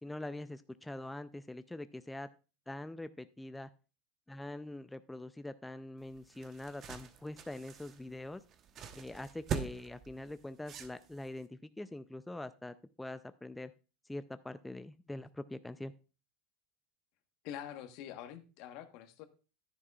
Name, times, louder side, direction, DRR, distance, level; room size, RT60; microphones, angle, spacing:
voice 1, 0.0-2.3 2.7-3.7 4.3-8.4 8.9-13.7 14.1-15.9, left 1 dB, 5° left, 11 dB, 0.4 m, -44 dB
sound 1, 6.0-11.4, right 7 dB, 40° right, 1.0 m, -43 dB
voice 2, 17.4-19.3, left 10 dB, 60° left, 9 dB, 1.2 m, -45 dB
10.5 x 9.6 x 2.4 m, 0.33 s
supercardioid pair, 110°, 0 cm